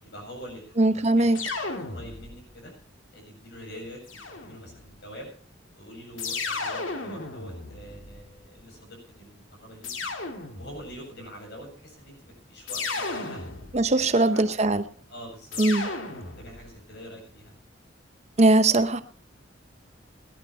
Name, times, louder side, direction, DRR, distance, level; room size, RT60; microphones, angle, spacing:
voice 1, 0.0-2.7 3.1-5.3 5.7-9.9 10.6-13.4 13.9-14.5 15.1-17.5, equal, 60° left, 1 dB, 7.8 m, -45 dB
voice 2, 0.8-1.4 13.7-14.8 15.6-15.9 18.4-19.0, right 2 dB, 35° right, 11 dB, 0.8 m, -20 dB
sound 1, 1.3-2.6 4.1-4.9 6.2-8.5 9.8-11.0 12.7-14.0 15.5-16.7, left 3 dB, 90° left, 2.1 m, -34 dB
18.0 x 11.5 x 4.4 m, 0.43 s
head